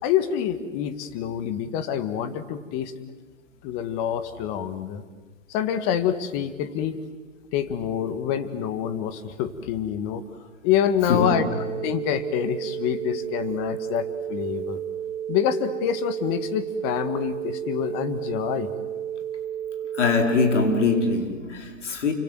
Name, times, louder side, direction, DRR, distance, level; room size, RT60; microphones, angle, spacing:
voice 1, 0.0-2.9 3.6-5.0 5.5-7.0 7.5-10.2 10.6-11.4 11.8-14.8 15.3-18.7, left 9 dB, 30° left, 2.0 m, -26 dB
voice 2, 11.1-11.5 19.9-22.1, left 4 dB, 65° left, 4.8 m, -23 dB
sound 1, 11.2-21.2, right 10 dB, 70° right, 2.7 m, -32 dB
29.5 x 25.0 x 7.8 m
hypercardioid pair, 135°, 38 cm